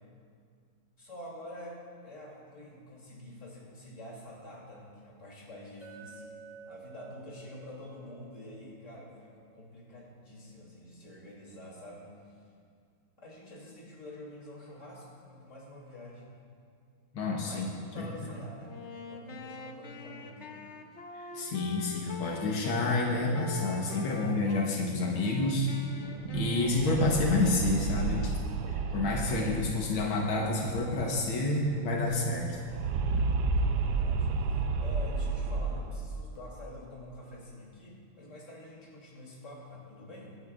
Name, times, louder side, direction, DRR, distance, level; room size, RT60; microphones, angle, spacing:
voice 1, 1.0-6.3 6.6-12.1 13.2-16.3 17.4-18.8 19.1-20.7 33.6-40.4, left 1 dB, 35° left, -4 dB, 3.2 m, -47 dB
Chink clink, 5.8-10.0, right 5 dB, 20° left, 1.8 m, -52 dB
voice 2, 17.1-17.7 18.0-18.3 21.1-25.7 26.3-28.4 28.7-32.6, left 2 dB, 85° left, -1 dB, 2.0 m, -29 dB
Wind instrument woodwind instrument, 18.6-22.8 23.3-24.7 25.1-28.3, left 4 dB, 60° left, 0.7 m, -44 dB
sound 1, 26.1-31.4 31.6-31.7 32.0-36.3, right 4 dB, 70° right, 1.0 m, -32 dB
24.5 x 9.6 x 2.5 m, 2.2 s
omnidirectional pair, 2.2 m